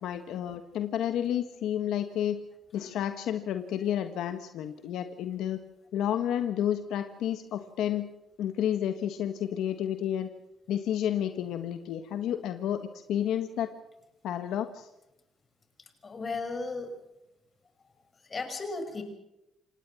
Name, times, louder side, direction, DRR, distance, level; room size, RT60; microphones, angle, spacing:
voice 1, 0.0-2.4 2.7-5.6 5.9-8.1 8.4-10.3 10.7-12.8 13.1-13.7 14.2-14.9, left 10 dB, 85° left, 8 dB, 1.4 m, -30 dB
voice 2, 16.0-16.9 18.2-19.0, left 3 dB, 35° left, 7 dB, 6.0 m, -35 dB
26.5 x 19.0 x 6.0 m, 0.89 s
cardioid pair, 90°, 0 cm